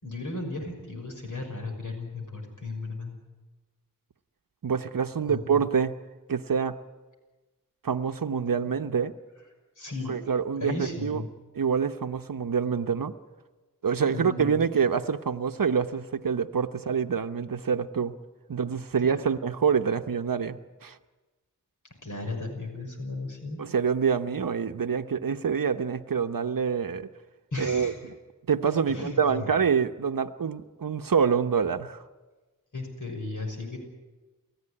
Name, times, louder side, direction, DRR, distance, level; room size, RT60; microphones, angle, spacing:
voice 1, 0.0-3.2 5.3-5.7 8.6-8.7 9.8-10.3 10.6-11.3 14.0-14.7 19.0-19.3 22.0-23.6 27.5-28.0 28.9-29.5 32.7-33.8, left 2 dB, 65° left, 2 dB, 6.2 m, -35 dB
voice 2, 4.6-5.9 6.3-6.8 7.8-9.1 10.1-11.2 11.6-13.1 13.8-18.1 18.5-21.0 23.6-27.1 27.6-27.9 28.5-32.0, right 6 dB, 85° right, 8 dB, 0.9 m, -26 dB
29.0 x 14.5 x 9.8 m, 1.2 s
wide cardioid pair, 70°, 33 cm